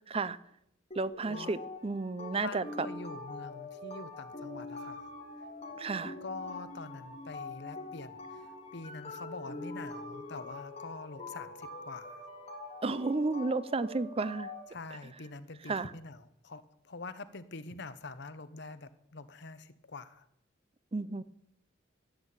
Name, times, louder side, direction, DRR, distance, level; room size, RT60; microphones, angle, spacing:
voice 1, 0.1-0.4 0.9-2.9 5.8-6.1 12.8-14.5 15.7-15.9 20.9-21.2, right 3 dB, 30° right, 16 dB, 0.5 m, -32 dB
sound 1, 0.9-14.6, left 2 dB, 35° left, 2.6 m, -44 dB
voice 2, 2.4-5.1 6.2-12.2 14.7-20.3, left 3 dB, 60° left, 12 dB, 1.0 m, -45 dB
14.5 x 8.5 x 8.9 m, 0.77 s
head